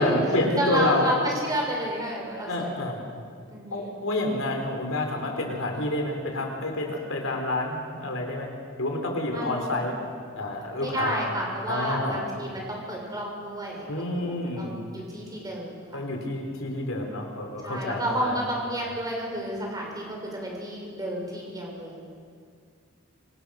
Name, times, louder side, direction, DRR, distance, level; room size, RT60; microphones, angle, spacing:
voice 1, 0.0-1.1 2.5-3.0 3.7-8.5 8.8-10.0 10.3-11.2 11.7-12.3 13.9-14.8 15.9-18.4, left 2 dB, 70° left, 2 dB, 4.4 m, -28 dB
voice 2, 0.6-2.8 3.5-3.9 9.3-9.9 10.7-13.9 14.1-16.1 17.6-22.1, right 1 dB, 20° right, -1 dB, 6.6 m, -31 dB
26.5 x 25.0 x 6.7 m, 2.1 s
head